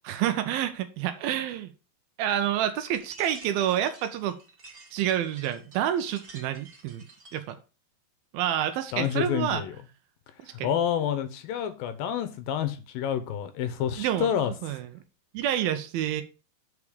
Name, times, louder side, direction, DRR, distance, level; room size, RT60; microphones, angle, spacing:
voice 1, 0.0-1.7 2.2-4.4 4.9-7.0 7.3-7.6 8.3-9.6 10.4-10.7 14.0-14.9 15.3-16.2, right 11 dB, 80° right, 2.4 m, -28 dB
sound 1, 2.9-7.5, right 2 dB, 35° right, 1.4 m, -50 dB
voice 2, 8.9-9.8 10.6-14.5, left 9 dB, 75° left, 2.4 m, -28 dB
8.6 x 4.8 x 4.9 m
omnidirectional pair, 4.6 m